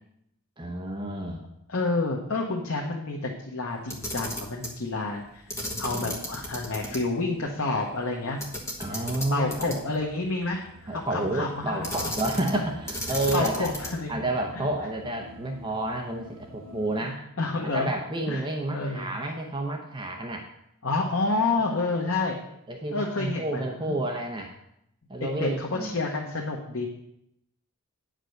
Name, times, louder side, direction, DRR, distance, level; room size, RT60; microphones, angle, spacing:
voice 1, 0.6-1.5 8.8-9.8 10.9-13.7 14.1-17.2 17.7-20.5 21.7-21.8 22.7-24.5 25.1-26.0, right 1 dB, 20° right, 2 dB, 0.7 m, -30 dB
voice 2, 1.7-5.4 5.8-8.4 8.9-9.0 9.3-12.1 13.3-14.2 14.5-14.7 17.0-17.9 18.3-18.4 18.7-19.1 20.8-22.4 22.9-24.0 25.2-26.9, left 3 dB, 65° left, -1 dB, 1.0 m, -29 dB
Camera, 3.8-4.8 5.5-7.0 7.3-7.4 8.4-10.0 11.8-12.6 12.9-14.1, left 1 dB, 10° left, 1.2 m, -34 dB
sound 1, 8.4-17.0, equal, 85° right, 1.4 m, -49 dB
9.0 x 5.1 x 6.4 m, 0.79 s
head